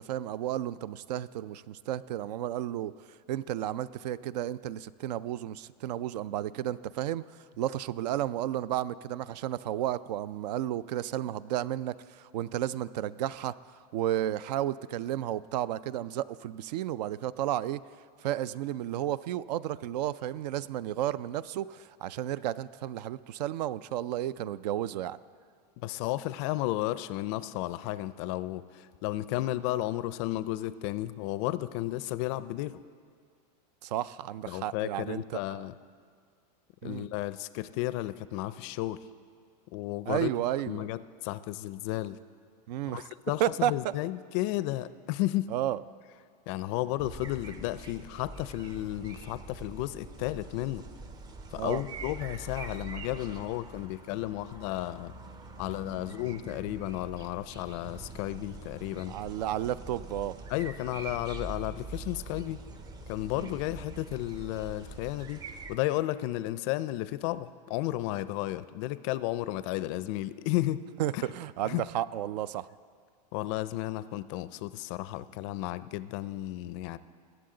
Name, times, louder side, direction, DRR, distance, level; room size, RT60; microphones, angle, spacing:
voice 1, 0.0-2.9 3.3-7.2 7.6-13.5 13.9-17.8 18.2-25.2 33.8-35.2 35.5-35.6 36.8-37.1 40.1-40.9 42.7-43.1 43.4-43.9 45.5-45.8 51.6-51.8 59.1-60.4 63.4-63.5 71.0-72.7, right 12 dB, 75° right, 18 dB, 0.4 m, -32 dB
voice 2, 25.8-32.8 34.5-35.7 36.8-39.0 39.7-40.3 40.7-42.2 42.9-45.5 46.5-50.8 51.5-55.1 55.6-59.2 60.5-62.6 63.1-65.4 65.7-70.8 71.1-71.3 71.6-71.8 73.3-77.0, left 16 dB, 45° left, 15 dB, 0.4 m, -33 dB
sound 1, 47.0-65.8, right 3 dB, 20° right, 0.6 m, -44 dB
20.5 x 7.9 x 3.8 m, 2.2 s
supercardioid pair, 145°, 21 cm